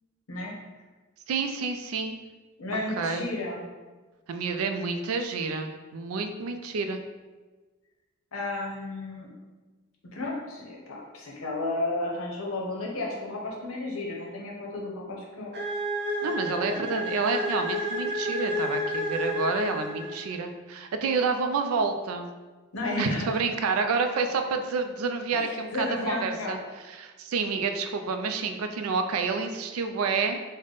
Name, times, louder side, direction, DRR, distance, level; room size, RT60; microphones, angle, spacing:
voice 1, 1.3-2.2 3.0-3.3 4.3-7.0 16.2-22.3 23.0-26.6 26.8-30.4, right 4 dB, 80° right, 6 dB, 0.4 m, -29 dB
voice 2, 2.6-3.7 8.3-9.3 10.1-15.5 16.7-16.8 22.7-23.4 25.3-26.6, left 2 dB, 80° left, -2 dB, 0.8 m, -33 dB
sound 1, 15.5-20.4, equal, 55° right, 0.7 m, -30 dB
3.4 x 2.1 x 3.8 m, 1.3 s
head